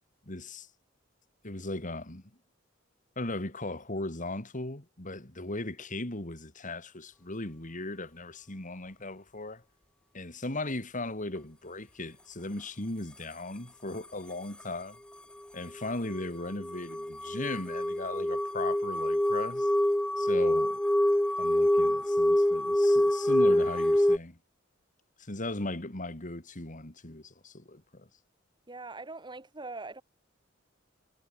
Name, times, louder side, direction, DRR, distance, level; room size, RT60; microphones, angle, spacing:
voice 1, 0.3-0.7 1.4-2.2 3.2-9.6 10.1-15.0 15.5-19.7 20.2-20.8 21.4-24.4 25.2-28.1, left 2 dB, 40° left, 3.0 m, -37 dB
sound 1, 15.8-24.2, left 1 dB, 5° left, 0.4 m, -26 dB
voice 2, 28.7-30.0, right 3 dB, 25° right, 2.2 m, -42 dB
head